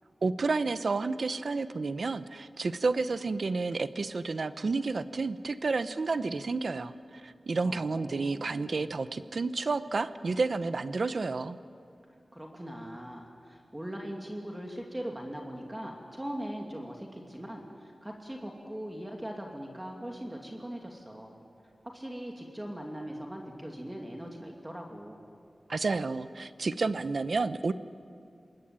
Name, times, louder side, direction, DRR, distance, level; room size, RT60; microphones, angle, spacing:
voice 1, 0.2-6.9 7.2-11.6 25.7-27.7, right 3 dB, 65° right, 12 dB, 0.8 m, -30 dB
voice 2, 7.6-8.9 12.3-21.3 21.8-25.2, equal, 15° right, 0 dB, 2.6 m, -40 dB
26.0 x 21.5 x 8.9 m, 2.4 s
wide cardioid pair, 105°, 0 cm